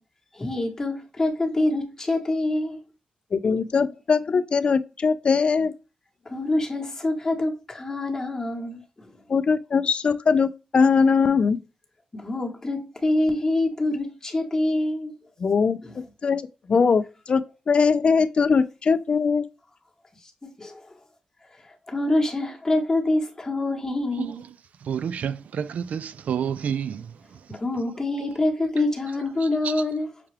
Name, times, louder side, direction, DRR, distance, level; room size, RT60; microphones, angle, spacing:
voice 1, 0.3-2.8 6.2-9.1 12.1-15.1 15.8-15.9 20.6-21.0 21.9-24.4 27.5-30.1, left 2 dB, 20° left, 1.0 m, -26 dB
voice 2, 3.3-5.7 9.3-11.6 15.4-15.8 16.2-16.4 16.7-19.4, left 5 dB, 45° left, 0.3 m, -21 dB
voice 3, 24.8-27.4 29.6-29.7, right 8 dB, 70° right, 0.3 m, -29 dB
5.7 x 2.3 x 3.2 m
wide cardioid pair, 105°, 3 cm